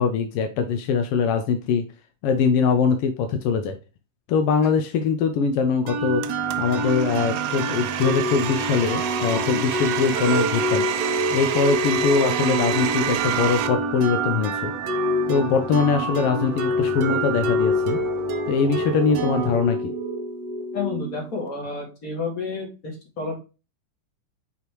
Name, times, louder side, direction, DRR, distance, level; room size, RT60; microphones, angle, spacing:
voice 1, 0.0-1.8 2.2-3.8 4.3-6.2 6.6-10.9 11.3-14.7 15.3-18.0 18.5-19.9, left 5 dB, 80° left, 7 dB, 1.3 m, -22 dB
sound 1, 5.9-21.5, right 1 dB, 65° right, 1.8 m, -26 dB
Domestic sounds home sounds, 6.2-13.7, right 10 dB, 90° right, 1.3 m, -29 dB
voice 2, 20.7-23.4, left 4 dB, 30° left, -1 dB, 2.6 m, -30 dB
5.9 x 5.7 x 3.1 m, 0.31 s
omnidirectional pair, 3.4 m